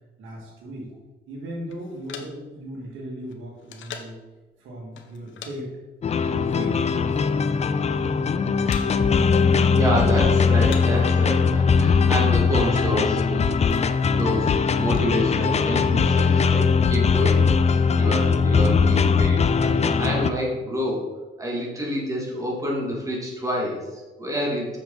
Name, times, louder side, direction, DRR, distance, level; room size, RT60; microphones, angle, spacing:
voice 1, 0.2-0.9 1.3-4.2 4.6-5.7 6.3-6.9 8.6-9.3, right 1 dB, 90° right, -1 dB, 2.3 m, -37 dB
sound 1, 1.7-4.3 4.9-5.6 5.8-6.0 6.7-7.5 7.8-8.2 8.7-9.2 9.4-10.1 10.5-11.7 12.0-12.1 12.3-12.7 13.2-15.1, left 7 dB, 75° left, 1.0 m, -43 dB
sound 2, 6.0-20.3, left 5 dB, 35° left, 0.5 m, -20 dB
voice 2, 9.8-13.5 13.8-21.0 21.4-24.8, equal, 15° right, -3 dB, 2.7 m, -28 dB
7.1 x 7.0 x 4.0 m, 1.2 s
cardioid pair, 90°, 20 cm